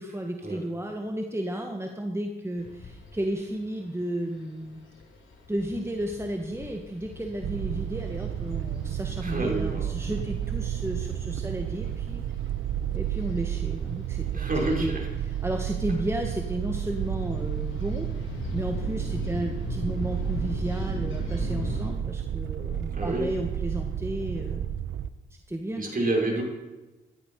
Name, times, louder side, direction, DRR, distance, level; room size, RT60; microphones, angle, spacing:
voice 1, 0.0-4.8 5.5-12.2 12.9-14.5 14.8-14.9 15.2-18.1 18.5-24.7 25.5-25.9, right 1 dB, 15° right, 3 dB, 1.7 m, -33 dB
sound 1, 2.6-21.9, left 3 dB, 80° left, 5.6 m, -41 dB
sound 2, 7.4-25.1, right 10 dB, 85° right, 0.7 m, -31 dB
voice 2, 9.2-9.9 14.3-15.1 22.9-23.3 25.8-26.4, right 2 dB, 45° right, 0 dB, 5.3 m, -28 dB
16.5 x 13.5 x 5.4 m, 1.1 s
cardioid pair, 60°, 20 cm